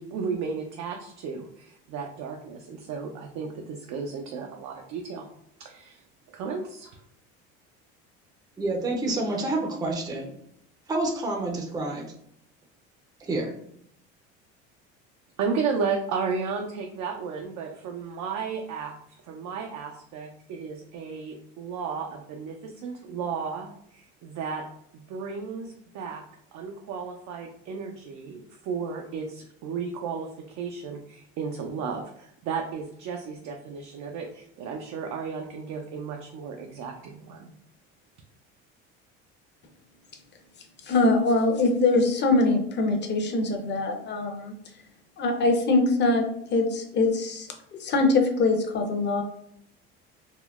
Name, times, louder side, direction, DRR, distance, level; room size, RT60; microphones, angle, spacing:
voice 1, 0.0-5.2 5.6-6.0 6.3-6.9 15.4-18.9 19.2-24.6 24.9-26.2 26.5-37.5, right 5 dB, 55° right, 2 dB, 0.5 m, -34 dB
voice 2, 8.6-10.4 10.9-12.1 13.2-13.6, right 2 dB, 10° right, 1 dB, 0.5 m, -28 dB
voice 3, 40.8-44.5 45.2-46.2 46.5-47.5 47.8-49.2, left 2 dB, 30° left, 3 dB, 0.7 m, -23 dB
3.6 x 2.1 x 2.3 m, 0.70 s
supercardioid pair, 95°, 33 cm